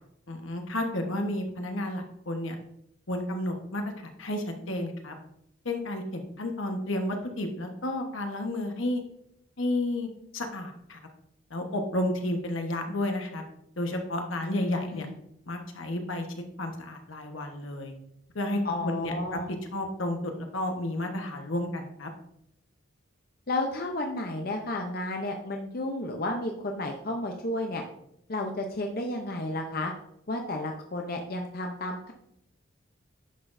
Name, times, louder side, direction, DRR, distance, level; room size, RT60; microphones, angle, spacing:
voice 1, 0.3-2.5 3.1-3.8 4.2-5.1 5.6-9.0 9.6-11.0 11.5-13.4 13.8-15.1 15.5-16.3 16.6-17.9 18.3-22.1, left 1 dB, 75° left, 4 dB, 1.2 m, -31 dB
voice 2, 14.4-15.1 18.6-19.5 23.5-27.8 28.3-29.9 30.3-32.1, left 2 dB, 45° left, 2 dB, 0.7 m, -32 dB
10.0 x 6.0 x 2.6 m, 0.76 s
head